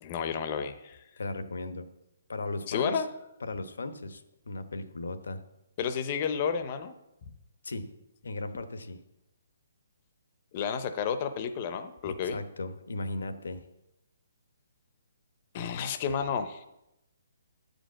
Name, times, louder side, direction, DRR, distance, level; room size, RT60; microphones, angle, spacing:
voice 1, 0.0-1.0 2.7-3.0 5.8-6.9 10.5-12.4 15.5-16.6, left 7 dB, 30° left, 9 dB, 0.6 m, -31 dB
voice 2, 1.2-1.9 2.3-3.0 3.4-5.4 7.6-7.9 8.2-9.0 12.1-13.7, left 2 dB, 90° left, 9 dB, 1.1 m, -37 dB
9.6 x 5.2 x 7.5 m, 0.90 s
hypercardioid pair, 165°, 0 cm